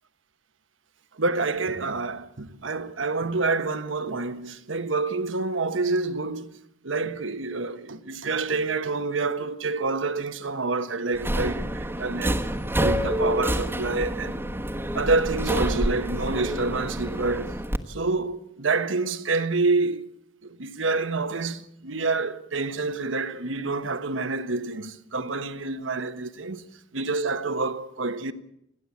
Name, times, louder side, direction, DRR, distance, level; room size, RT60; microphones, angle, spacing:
voice 1, 1.1-6.6 6.8-12.4 12.8-14.4 14.9-17.5 17.9-20.0 20.4-26.7 26.9-28.3, right 3 dB, 70° right, 1.3 m, -27 dB
Subway metro underground, 11.1-17.8, equal, 10° right, 1.3 m, -28 dB
29.5 x 11.0 x 8.5 m
head